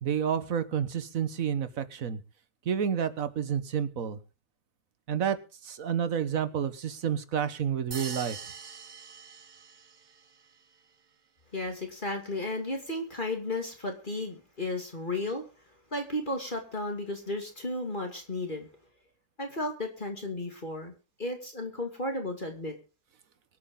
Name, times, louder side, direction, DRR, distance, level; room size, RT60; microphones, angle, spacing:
voice 1, 0.0-2.2 2.6-4.2 5.1-5.4 5.6-8.4, right 8 dB, 65° right, 13 dB, 1.6 m, -29 dB
sound 1, 7.9-10.2, right 6 dB, 35° right, 0.9 m, -42 dB
voice 2, 11.5-15.4 15.9-18.7 19.4-20.9 21.2-22.8, left 2 dB, 30° left, 3 dB, 2.6 m, -34 dB
24.5 x 8.5 x 3.8 m, 0.32 s
omnidirectional pair, 1.6 m